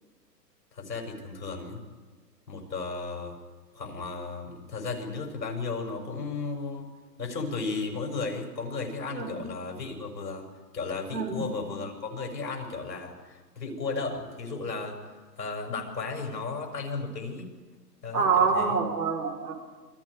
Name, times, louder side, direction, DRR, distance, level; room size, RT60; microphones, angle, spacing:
voice 1, 0.7-1.8 2.5-3.4 3.7-6.9 7.2-10.5 10.7-15.0 15.4-17.5 18.0-18.8, left 4 dB, 80° left, 2 dB, 6.5 m, -34 dB
voice 2, 18.1-19.5, right 5 dB, 75° right, 1 dB, 5.4 m, -26 dB
28.5 x 23.5 x 5.0 m, 1.4 s
hypercardioid pair, 135°, 50 cm